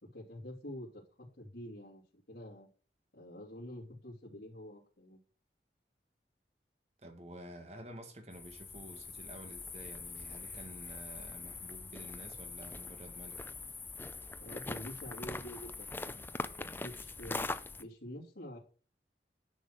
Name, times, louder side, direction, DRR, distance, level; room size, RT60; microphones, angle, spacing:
voice 1, 0.0-2.7 3.1-5.2 14.4-17.4 17.8-18.6, left 1 dB, 75° left, 2.8 m, -47 dB
voice 2, 7.0-13.4, equal, 40° right, 1.9 m, -50 dB
gravel stone walk hike suburban park crickets, 8.3-17.8, left 3 dB, 10° left, 0.5 m, -43 dB
10.5 x 6.3 x 6.5 m
head